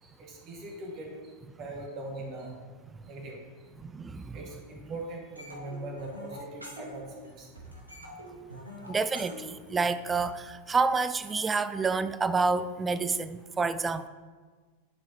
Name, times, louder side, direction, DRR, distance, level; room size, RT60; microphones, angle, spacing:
voice 1, 0.0-2.6 3.0-3.4 4.3-7.5, right 2 dB, 35° right, 0 dB, 1.7 m, -41 dB
voice 2, 3.8-4.4 8.9-14.1, right 4 dB, 15° right, 14 dB, 0.3 m, -28 dB
sound 1, 5.4-7.3 7.6-10.3, equal, 85° right, 1.3 m, -45 dB
11.0 x 4.8 x 2.9 m, 1.5 s
figure-of-eight pair, 90°, 0 cm